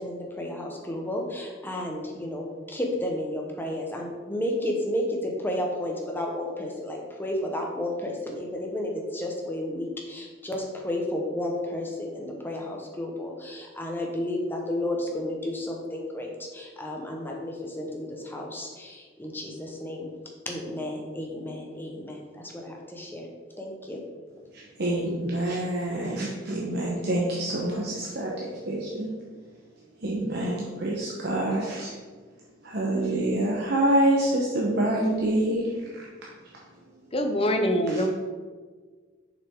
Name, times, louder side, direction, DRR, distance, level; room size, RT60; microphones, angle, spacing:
voice 1, 0.0-20.1 20.5-23.3 23.6-24.0, left 1 dB, 10° left, 0 dB, 1.1 m, -32 dB
voice 2, 24.5-29.1 30.0-31.9 32.6-36.1 37.9-38.0, right 1 dB, 60° right, -4 dB, 1.0 m, -26 dB
voice 3, 37.1-38.1, equal, 30° left, 5 dB, 0.7 m, -24 dB
6.7 x 5.8 x 3.7 m, 1.5 s
head